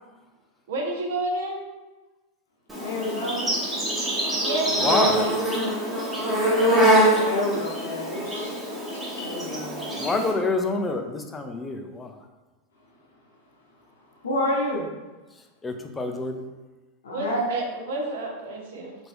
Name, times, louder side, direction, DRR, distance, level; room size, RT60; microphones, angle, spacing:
voice 1, 0.7-1.6 4.4-5.4 17.1-19.0, right 2 dB, 65° right, 1 dB, 0.7 m, -30 dB
Insect, 2.7-10.3, right 1 dB, 10° right, 1.0 m, -24 dB
voice 2, 2.8-3.5 6.8-8.5 8.9-9.8 14.2-14.9 17.0-17.5, left 1 dB, 75° left, -3 dB, 0.9 m, -29 dB
voice 3, 4.8-5.3 10.0-12.2 15.6-16.4, left 3 dB, 20° left, 4 dB, 0.4 m, -27 dB
2.9 x 2.5 x 3.3 m, 1.2 s
hypercardioid pair, 90°, 0 cm